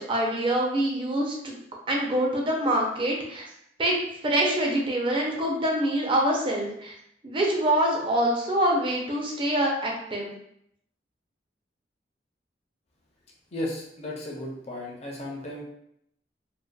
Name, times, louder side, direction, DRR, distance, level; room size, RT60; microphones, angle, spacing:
voice 1, 0.0-1.6 1.9-3.5 3.8-6.9 7.2-10.3, right 1 dB, 30° right, -1 dB, 0.5 m, -25 dB
voice 2, 13.5-15.6, left 1 dB, 35° left, -3 dB, 0.6 m, -34 dB
2.6 x 2.2 x 2.2 m, 0.74 s
head